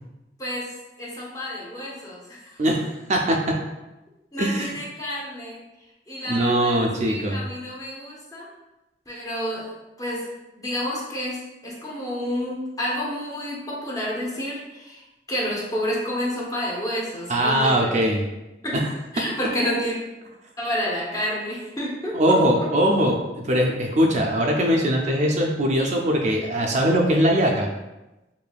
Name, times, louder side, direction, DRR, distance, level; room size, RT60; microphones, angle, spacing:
voice 1, 0.4-2.6 4.3-5.6 6.1-8.5 9.1-9.7 10.0-10.3 10.6-17.9 18.6-18.8 19.1-19.9 20.6-22.7, equal, 20° left, -4 dB, 0.7 m, -30 dB
voice 2, 2.6-3.6 4.4-4.8 6.3-7.4 17.3-18.2 22.1-27.7, equal, 40° right, 1 dB, 0.4 m, -21 dB
4.9 x 2.6 x 2.3 m, 1.0 s
head